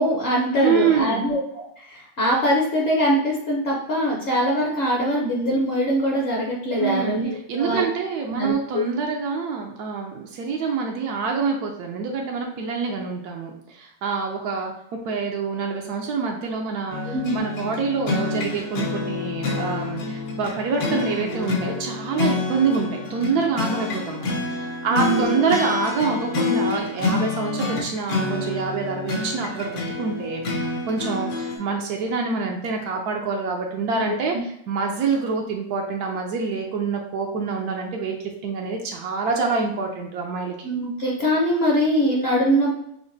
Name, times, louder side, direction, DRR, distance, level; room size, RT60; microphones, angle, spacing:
voice 1, 0.0-7.8 8.3-8.8 17.1-17.5 24.9-25.6 33.9-34.1 40.6-42.7, equal, 50° left, -3 dB, 0.8 m, -23 dB
voice 2, 0.5-1.3 6.8-7.2 7.5-14.7 15.0-34.3 34.7-38.1 38.4-40.7, right 5 dB, 80° right, 1 dB, 1.1 m, -26 dB
sound 1, 16.9-31.6, left 3 dB, 70° left, 1.2 m, -27 dB
5.8 x 2.1 x 2.6 m, 0.74 s
omnidirectional pair, 1.6 m